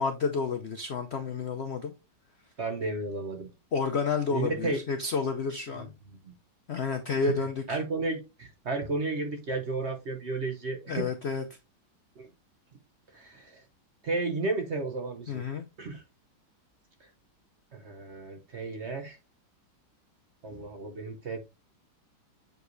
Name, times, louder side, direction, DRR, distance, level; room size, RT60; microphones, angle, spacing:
voice 1, 0.0-1.9 3.7-5.9 6.7-7.8 10.9-11.4 15.3-15.7, left 5 dB, 70° left, 0.6 m, -30 dB
voice 2, 2.6-3.5 4.3-4.8 5.7-5.9 6.2-6.3 7.2-7.3 7.7-11.1 12.2-12.3 13.1-13.6 14.0-15.4 15.8-16.0 17.7-19.2 20.4-21.4, right 3 dB, 50° right, 0.9 m, -33 dB
7.9 x 4.8 x 2.6 m
omnidirectional pair, 2.0 m